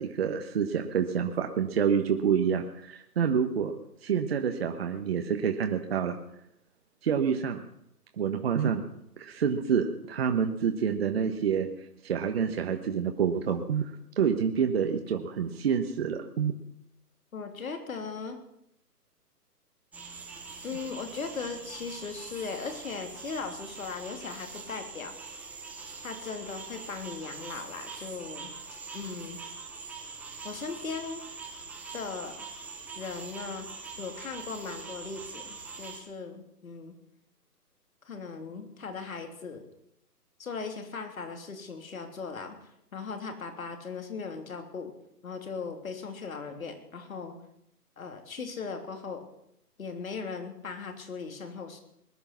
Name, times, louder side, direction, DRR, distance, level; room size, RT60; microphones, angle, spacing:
voice 1, 0.0-3.7 4.0-6.2 7.0-7.6 8.2-8.8 9.2-11.7 12.0-13.9 14.2-16.5, right 7 dB, 40° right, 5 dB, 1.3 m, -27 dB
voice 2, 17.3-18.4 20.6-25.1 26.0-28.5 28.9-29.4 30.4-31.2 31.9-32.4 32.9-33.7 34.0-36.9 38.1-39.6 40.4-42.6 42.9-44.9 45.2-47.4 48.0-49.3 49.8-51.8, left 5 dB, 60° left, 5 dB, 3.3 m, -38 dB
sound 1, 19.9-36.0, right 4 dB, 5° right, 1.0 m, -43 dB
20.5 x 11.0 x 6.0 m, 0.76 s
figure-of-eight pair, 140°, 47 cm